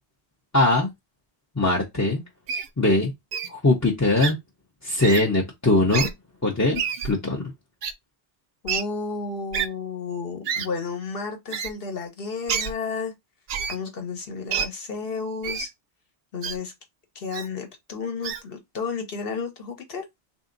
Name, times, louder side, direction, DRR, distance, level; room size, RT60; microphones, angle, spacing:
voice 1, 0.5-0.9 1.6-2.2 2.8-3.1 3.5-4.4 4.8-6.1 6.4-7.4, left 2 dB, 20° left, 0.6 m, -21 dB
Wild animals, 2.5-2.7 3.3-3.5 4.2-4.3 5.0-5.2 5.9-6.1 6.7-7.1 7.8-7.9 8.7-8.8 9.5-9.7 10.5-10.7 11.5-11.7 12.5-12.7 13.5-13.8 14.5-14.7 15.4-15.7 16.4-16.6 17.3-17.5 18.2-18.4, right 7 dB, 55° right, 0.6 m, -28 dB
voice 2, 8.6-13.1 13.7-15.7 16.3-16.7 17.1-20.0, left 4 dB, 60° left, 1.2 m, -32 dB
3.3 x 2.7 x 3.8 m
omnidirectional pair, 1.1 m